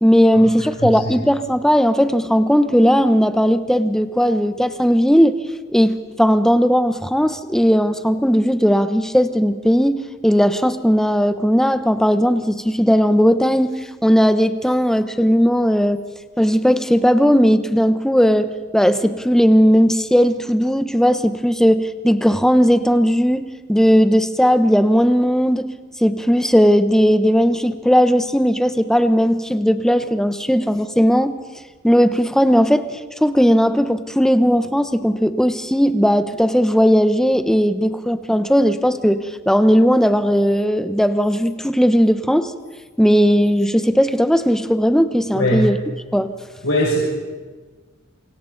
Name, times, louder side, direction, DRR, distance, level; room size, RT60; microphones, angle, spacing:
voice 1, 0.0-5.4 5.7-16.0 16.4-25.7 26.0-31.4 31.8-42.5 43.0-45.8 46.1-46.3, equal, 5° left, 10 dB, 0.9 m, -17 dB
voice 2, 0.8-1.1 45.3-45.7 46.6-47.0, equal, 90° left, -8 dB, 6.8 m, -20 dB
27.5 x 25.5 x 4.0 m, 1.3 s
head